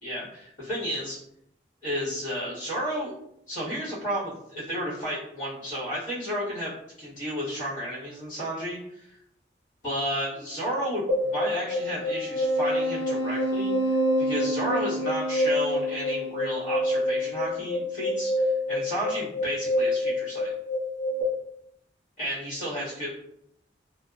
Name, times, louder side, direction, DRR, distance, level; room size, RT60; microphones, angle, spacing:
voice 1, 0.0-1.2 1.8-3.1 3.5-6.7 7.0-9.1 9.8-20.5 22.2-23.1, equal, 45° left, -8 dB, 1.4 m, -32 dB
sound 1, 11.1-21.2, left 1 dB, 85° right, 0.5 m, -27 dB
2.7 x 2.1 x 2.3 m, 0.75 s
head